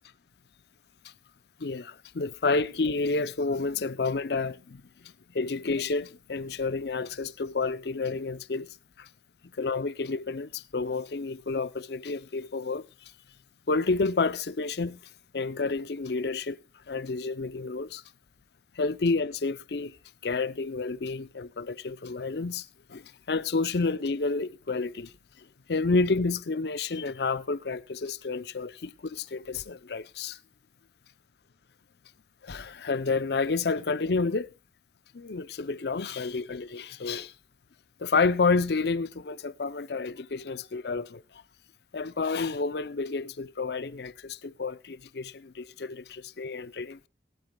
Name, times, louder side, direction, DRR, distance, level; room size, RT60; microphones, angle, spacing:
voice 1, 1.6-9.1 9.6-12.8 13.7-15.0 15.3-18.0 18.8-20.0 20.2-25.1 25.4-30.4 32.4-34.5 35.1-37.3 38.0-41.2 41.9-47.1, left 4 dB, 65° left, 0.6 m, -30 dB
19.5 x 13.0 x 2.3 m
head